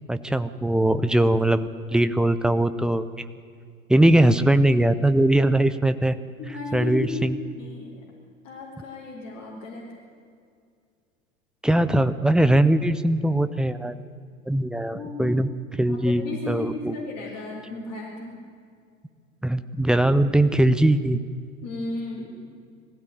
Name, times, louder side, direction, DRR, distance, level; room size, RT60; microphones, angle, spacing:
voice 1, 0.1-3.3 3.9-6.2 6.7-7.4 11.6-14.0 14.5-15.5 15.8-16.9 19.4-21.2, right 1 dB, ahead, 11 dB, 0.4 m, -21 dB
voice 2, 6.4-8.0 8.4-9.9 14.9-15.4 15.8-18.4 21.6-22.3, left 3 dB, 40° left, -5 dB, 4.6 m, -34 dB
21.5 x 15.5 x 9.1 m, 2.3 s
figure-of-eight pair, 90°, 40 cm